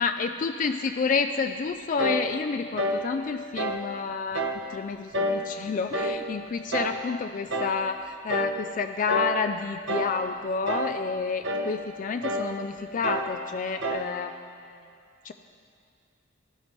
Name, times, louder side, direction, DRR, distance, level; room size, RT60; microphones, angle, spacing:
voice 1, 0.0-14.4 15.2-15.3, left 5 dB, 40° left, 8 dB, 0.3 m, -29 dB
sound 1, 2.0-2.3 2.8-3.1 3.6-3.9 4.3-4.6 5.1-5.5 5.9-6.2 6.7-7.0 7.5-7.8 8.3-8.6 9.1-9.4 9.9-10.2 10.7-11.0 11.4-11.7 12.2-12.5 13.0-13.3 13.8-14.1, right 1 dB, 65° right, 0.9 m, -28 dB
18.5 x 11.0 x 3.2 m, 2.5 s
head